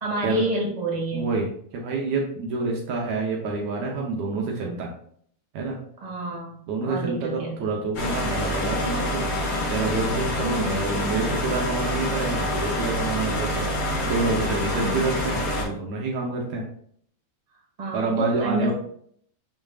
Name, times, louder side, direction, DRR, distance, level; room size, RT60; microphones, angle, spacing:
voice 1, 0.0-1.3 6.0-7.6 10.4-10.8 14.7-15.0 17.8-18.7, right 2 dB, 85° right, -4 dB, 0.3 m, -29 dB
voice 2, 1.1-4.9 5.5-5.8 6.7-9.3 9.7-13.7 14.0-16.6 17.9-18.7, right 3 dB, 70° right, -1 dB, 1.8 m, -27 dB
sound 1, 7.9-15.6, left 1 dB, 50° left, 1.9 m, -26 dB
6.8 x 5.6 x 2.4 m, 0.63 s
omnidirectional pair, 4.3 m